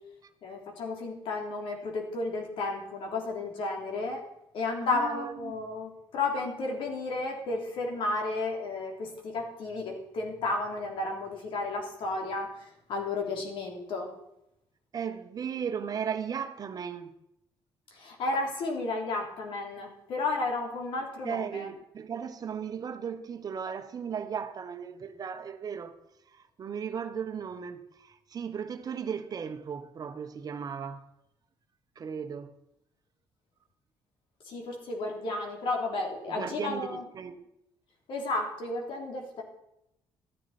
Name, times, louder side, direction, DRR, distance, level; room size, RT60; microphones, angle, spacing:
voice 1, 0.4-4.2 4.5-14.1 17.9-21.7 34.4-37.1 38.1-39.4, left 3 dB, 70° left, 3.2 m, -33 dB
voice 2, 4.8-5.5 14.9-17.2 21.2-26.0 26.3-31.1 31.9-32.5 36.3-37.4, right 7 dB, 45° right, 1.2 m, -36 dB
13.5 x 10.0 x 4.3 m
cardioid pair, 100°, 9 cm